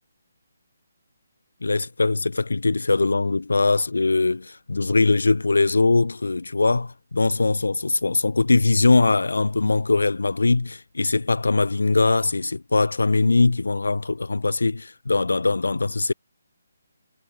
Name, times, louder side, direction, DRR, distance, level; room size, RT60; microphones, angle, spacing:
voice 1, 1.6-16.1, left 3 dB, 90° left, 1.2 m, -21 dB
hypercardioid pair, 160°, 0 cm